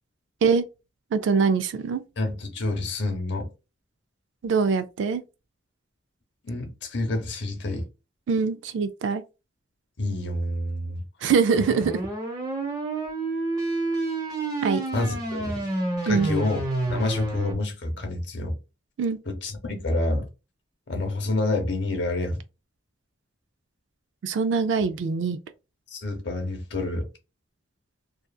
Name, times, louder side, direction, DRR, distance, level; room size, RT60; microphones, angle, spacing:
voice 1, 1.1-2.0 4.4-5.2 8.3-9.2 11.2-11.9 14.6-14.8 16.1-16.3 19.0-19.2 24.2-25.4, right 5 dB, 80° right, 0.3 m, -23 dB
voice 2, 2.2-3.5 6.4-7.9 10.0-11.0 14.9-15.7 16.1-16.6 16.9-18.6 19.3-20.3 20.9-22.4 25.9-27.1, left 2 dB, 65° left, 0.8 m, -28 dB
sound 1, 11.6-17.5, right 2 dB, 20° right, 0.8 m, -29 dB
2.7 x 2.4 x 2.3 m
head